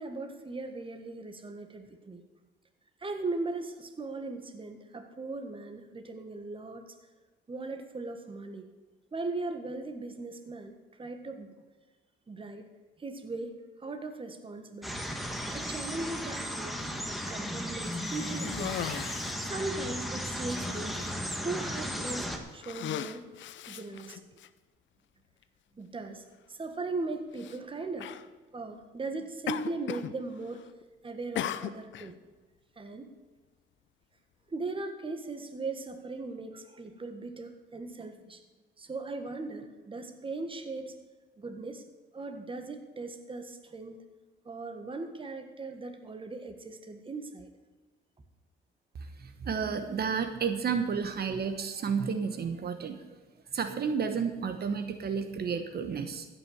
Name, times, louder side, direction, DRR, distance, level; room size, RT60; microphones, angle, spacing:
voice 1, 0.0-2.2 3.0-7.0 7.5-8.6 9.1-11.5 12.3-12.7 13.0-13.5 13.8-15.0 15.5-18.7 19.4-23.3 23.7-24.2 25.8-28.1 28.5-30.7 31.0-32.2 32.8-33.1 34.5-38.4 38.8-40.9 41.4-41.8 42.1-44.0 44.4-47.5, right 3 dB, 25° right, 6 dB, 1.5 m, -38 dB
sound 1, 14.8-22.4, equal, ahead, 1.6 m, -35 dB
Cough, 17.8-19.5 20.2-20.3 20.7-21.1 21.9-22.1 22.5-24.5 25.4-25.5 27.3-27.6 28.0-28.3 29.5-30.1 30.4-30.8 31.4-32.1, left 11 dB, 70° left, 0.7 m, -38 dB
voice 2, 49.0-53.2 53.5-56.3, right 6 dB, 50° right, 8 dB, 1.1 m, -32 dB
15.0 x 6.1 x 7.9 m, 1.3 s
cardioid pair, 90°, 20 cm